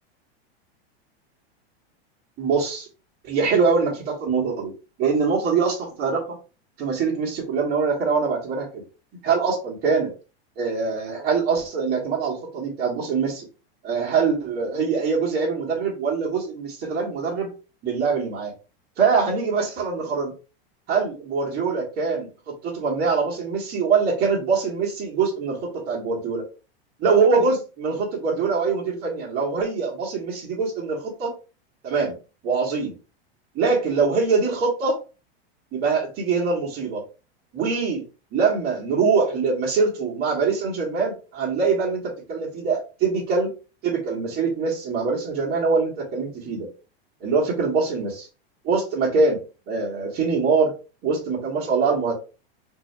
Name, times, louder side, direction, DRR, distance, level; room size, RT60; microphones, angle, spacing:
voice 1, 2.4-2.9 3.2-4.7 5.0-6.3 6.8-8.8 9.2-10.1 10.6-13.5 13.8-17.5 17.8-18.5 19.0-20.3 20.9-26.4 27.0-31.3 31.8-32.2 32.4-32.9 33.5-35.0 35.7-37.0 37.5-38.0 38.3-43.5 43.8-46.7 47.2-48.3 48.6-49.4 49.7-50.7 51.0-52.1, right 5 dB, 30° right, -4 dB, 1.6 m, -23 dB
3.9 x 2.8 x 3.3 m, 0.32 s
supercardioid pair, 155°, 31 cm